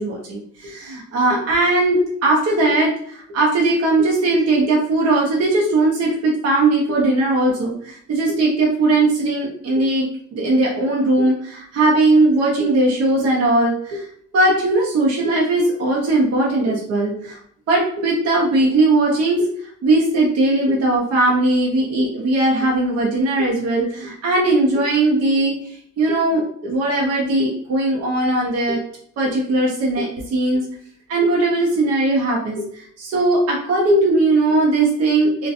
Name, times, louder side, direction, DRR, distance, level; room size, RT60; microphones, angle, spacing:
voice 1, 0.0-10.1 10.3-14.1 14.3-17.4 17.7-28.8 29.2-30.6 31.1-35.5, right 2 dB, 55° right, -3 dB, 0.7 m, -19 dB
2.4 x 2.3 x 2.6 m, 0.63 s
cardioid pair, 90°, 30 cm